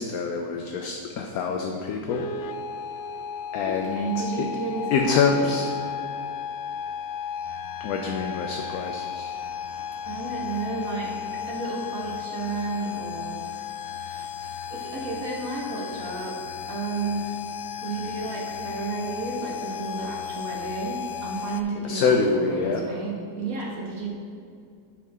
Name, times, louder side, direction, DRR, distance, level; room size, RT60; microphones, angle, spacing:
voice 1, 0.0-2.2 3.5-4.1 4.4-4.5 4.9-5.6 7.8-9.3 21.8-22.8, left 5 dB, 70° left, 3 dB, 1.0 m, -25 dB
sound 1, 2.1-21.6, left 7 dB, 85° left, 0.6 m, -34 dB
voice 2, 3.6-5.6 10.1-11.2 11.5-16.4 16.7-17.4 17.8-24.1, right 3 dB, 55° right, -3 dB, 1.9 m, -32 dB
10.0 x 6.0 x 3.5 m, 2.5 s
omnidirectional pair, 1.8 m